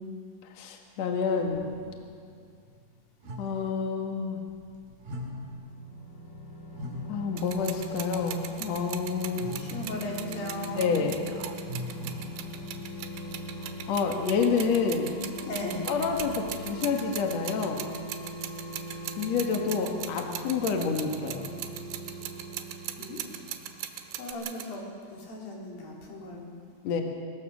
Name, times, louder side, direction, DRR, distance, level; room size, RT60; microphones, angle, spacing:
voice 1, 0.5-1.7 3.4-4.4 7.1-9.6 10.7-11.3 13.9-15.2 15.9-17.9 19.2-21.5 26.8-27.0, left 5 dB, 70° left, 3 dB, 1.7 m, -28 dB
sound 1, 1.5-3.0 3.2-4.6 4.9-8.2 9.4-10.7 11.6-12.6, equal, 50° right, 4.5 m, -42 dB
sound 2, 5.7-24.0 24.3-24.4, equal, 35° left, 1.9 m, -41 dB
sound 3, 7.4-24.8, right 11 dB, 90° right, 3.7 m, -40 dB
voice 2, 9.6-10.9 15.4-15.9 23.0-23.2 24.1-26.5, left 1 dB, 50° left, -2 dB, 5.1 m, -37 dB
25.0 x 21.0 x 6.3 m, 2.2 s
omnidirectional pair, 5.6 m